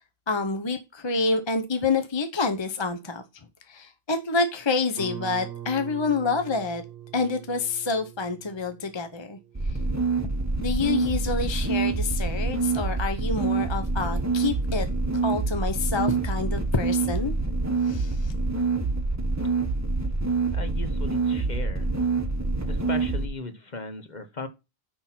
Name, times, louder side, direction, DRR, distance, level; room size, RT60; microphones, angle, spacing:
voice 1, 0.3-3.2 3.7-6.8 7.1-9.4 9.6-9.8 10.6-14.9 15.2-17.3 17.8-18.3, left 4 dB, 25° left, 0.9 m, -27 dB
Guitar, 5.0-10.4, right 9 dB, 65° right, 1.4 m, -42 dB
sound 1, 9.6-23.3, right 3 dB, 15° right, 1.0 m, -26 dB
voice 2, 20.5-21.9 22.7-24.5, left 3 dB, 45° left, 1.3 m, -37 dB
6.8 x 5.5 x 5.9 m
omnidirectional pair, 1.1 m